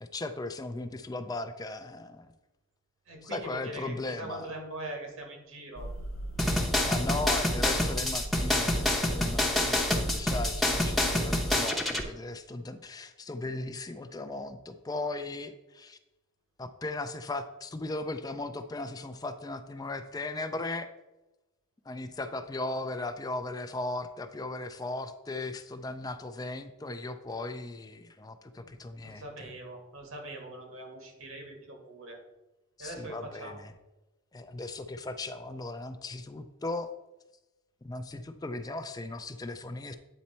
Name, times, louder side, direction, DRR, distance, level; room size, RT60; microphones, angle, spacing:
voice 1, 0.0-2.3 3.2-4.5 6.8-16.0 16.6-20.9 21.9-29.2 32.8-33.7 34.3-36.9 37.8-40.0, left 2 dB, 20° left, 9 dB, 0.4 m, -37 dB
voice 2, 3.1-5.9 28.6-28.7 29.0-32.2 32.8-33.6, right 1 dB, 90° right, 1 dB, 1.9 m, -42 dB
sound 1, 5.8-11.2, right 1 dB, 70° left, 0.6 m, -39 dB
sound 2, 6.4-12.0, left 1 dB, ahead, 0.7 m, -27 dB
8.9 x 4.2 x 4.3 m, 1.0 s
head